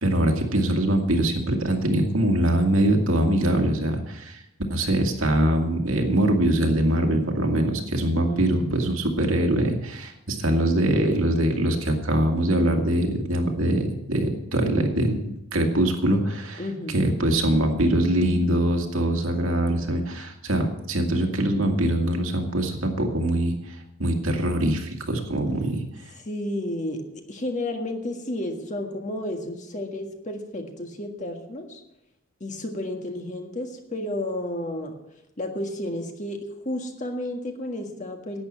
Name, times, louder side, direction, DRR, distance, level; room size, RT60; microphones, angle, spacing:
voice 1, 0.0-4.4 4.7-16.6 16.9-25.8, right 1 dB, 75° right, 3 dB, 2.1 m, -23 dB
voice 2, 8.2-8.7 16.6-17.1 26.1-31.8 32.4-34.9 35.4-36.4 36.6-38.4, left 1 dB, 35° left, 4 dB, 1.7 m, -32 dB
11.5 x 9.0 x 7.5 m, 0.86 s
head